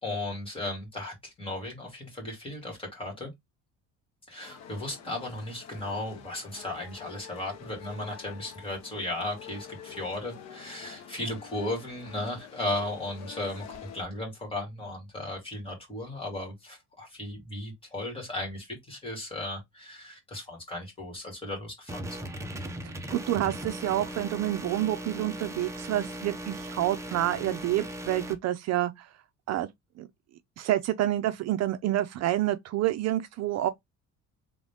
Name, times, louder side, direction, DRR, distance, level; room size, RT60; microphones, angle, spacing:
voice 1, 0.0-3.3 4.3-22.4, left 1 dB, 15° left, 2.4 m, -36 dB
sound 1, 4.4-14.0, left 8 dB, 60° left, 1.1 m, -48 dB
sound 2, 21.9-28.3, right 1 dB, 10° right, 0.6 m, -38 dB
voice 2, 22.8-29.1 29.5-29.7 30.0-30.1 30.6-33.7, right 13 dB, 55° right, 0.5 m, -28 dB
3.9 x 3.1 x 3.5 m
cardioid pair, 160°, 31 cm